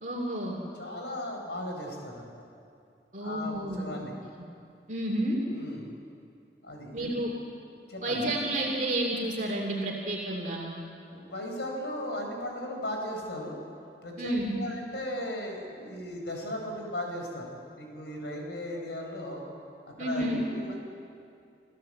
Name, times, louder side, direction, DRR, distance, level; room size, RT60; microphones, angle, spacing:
voice 1, 0.0-0.6 3.1-4.1 4.9-5.4 6.9-7.3 8.0-10.7 14.2-14.6 20.0-20.4, right 1 dB, 45° right, -1 dB, 2.8 m, -30 dB
voice 2, 0.7-2.4 3.2-4.2 5.5-5.9 6.6-7.1 7.9-8.2 11.1-13.6 14.0-19.4 20.0-20.8, left 1 dB, 90° left, 1 dB, 4.8 m, -37 dB
28.0 x 15.5 x 7.8 m, 2.4 s
head